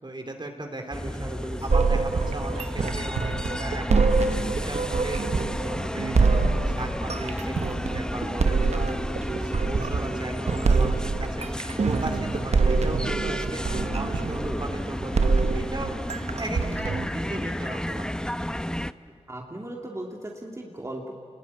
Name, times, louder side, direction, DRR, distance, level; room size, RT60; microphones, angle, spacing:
voice 1, 0.0-1.3 1.6-5.2 5.6-8.9 9.4-11.5 11.8-16.0 16.4-18.3, right 2 dB, 45° right, 4 dB, 3.2 m, -37 dB
sound 1, 0.9-18.9, left 1 dB, 5° left, 0.7 m, -32 dB
voice 2, 1.1-1.7 13.1-13.9 19.3-21.1, right 1 dB, 25° right, 0 dB, 2.8 m, -37 dB
sound 2, 1.7-17.1, right 4 dB, 80° right, 1.1 m, -25 dB
29.0 x 20.5 x 8.8 m, 2.4 s
wide cardioid pair, 55°, 11 cm